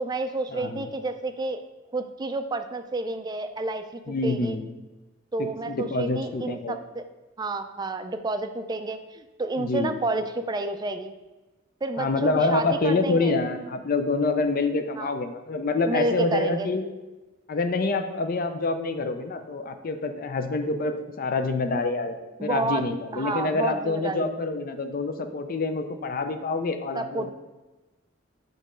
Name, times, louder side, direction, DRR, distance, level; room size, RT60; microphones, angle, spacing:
voice 1, 0.0-1.6 1.9-4.6 5.3-7.0 7.4-11.1 11.8-13.4 15.0-15.1 15.9-16.7 22.4-22.8 23.1-24.3 26.9-27.3, right 2 dB, 20° right, 8 dB, 0.3 m, -30 dB
voice 2, 0.5-0.8 4.1-4.7 5.4-6.8 9.6-9.9 12.0-16.9 17.5-27.3, left 3 dB, 45° left, 7 dB, 0.4 m, -27 dB
6.6 x 3.0 x 5.0 m, 1.1 s
head